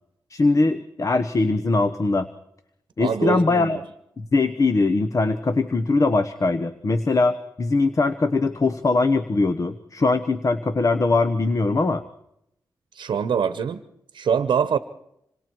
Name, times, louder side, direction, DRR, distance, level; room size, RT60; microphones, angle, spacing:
voice 1, 0.3-2.3 3.0-3.8 4.2-12.0, left 3 dB, 45° left, 10 dB, 1.1 m, -21 dB
voice 2, 3.0-3.7 12.9-13.8 14.1-14.8, right 7 dB, 90° right, 11 dB, 0.9 m, -24 dB
27.0 x 25.5 x 4.7 m, 0.77 s
cardioid pair, 75°, 8 cm